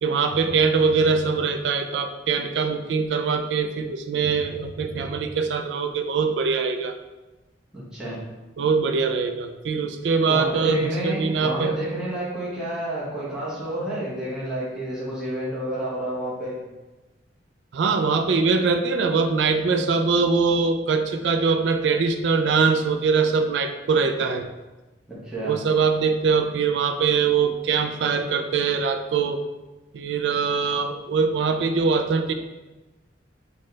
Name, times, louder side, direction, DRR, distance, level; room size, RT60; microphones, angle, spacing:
voice 1, 0.0-6.9 8.6-11.7 17.7-24.5 25.4-29.4 29.9-32.3, right 5 dB, 70° right, 7 dB, 0.3 m, -22 dB
voice 2, 7.7-8.2 10.3-16.6 25.1-25.6, right 1 dB, 5° right, -9 dB, 1.0 m, -29 dB
4.2 x 2.3 x 3.1 m, 1.1 s
head